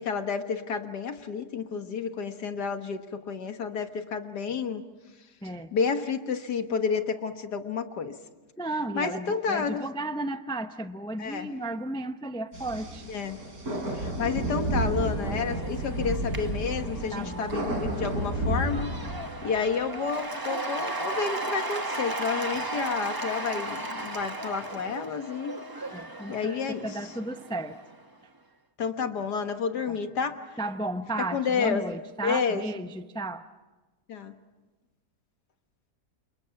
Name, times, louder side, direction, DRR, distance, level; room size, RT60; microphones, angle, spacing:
voice 1, 0.0-4.8 5.7-8.2 8.9-9.9 11.2-11.5 13.1-13.4 13.9-18.9 19.4-25.6 26.3-26.9 28.8-30.4 31.3-32.7 34.1-34.3, left 5 dB, 75° left, 7 dB, 2.0 m, -30 dB
voice 2, 8.6-13.1 17.1-17.5 25.9-27.8 29.9-30.0 30.6-33.5, right 2 dB, 5° left, 9 dB, 0.3 m, -34 dB
sound 1, 12.5-19.7, right 1 dB, 60° right, 4.8 m, -31 dB
Cheering / Applause / Crowd, 14.6-28.0, right 2 dB, 15° right, 1.0 m, -36 dB
29.0 x 28.0 x 5.9 m, 1.2 s
omnidirectional pair, 1.8 m